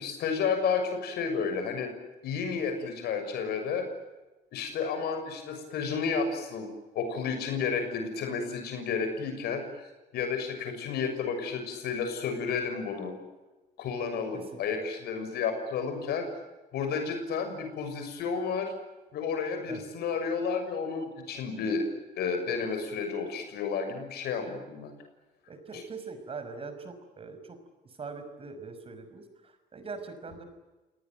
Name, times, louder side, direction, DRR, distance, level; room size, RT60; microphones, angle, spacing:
voice 1, 0.0-1.9 2.2-3.9 4.5-9.9 10.1-13.1 13.8-16.3 16.7-18.7 19.1-21.8 22.2-24.9 25.7-25.8, left 5 dB, 70° left, 6 dB, 6.6 m, -31 dB
voice 2, 25.5-27.6 28.0-30.4, right 4 dB, 35° right, 9 dB, 5.7 m, -42 dB
28.5 x 19.0 x 9.3 m, 1.1 s
cardioid pair, 110°, 17 cm